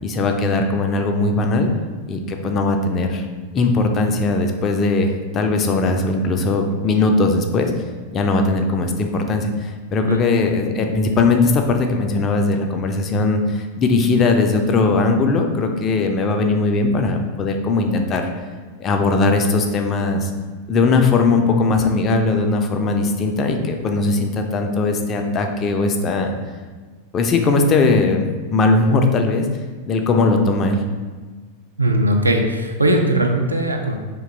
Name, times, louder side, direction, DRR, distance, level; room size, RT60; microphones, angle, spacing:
voice 1, 0.0-1.7 2.1-3.2 3.5-7.7 8.1-18.3 18.8-20.3 20.7-26.3 27.1-28.3 28.5-29.5 29.9-30.8, left 3 dB, 30° left, 4 dB, 0.3 m, -19 dB
voice 2, 31.8-33.9, right 1 dB, 80° right, 3 dB, 0.3 m, -19 dB
2.8 x 2.2 x 3.8 m, 1.4 s
figure-of-eight pair, 90°, 0 cm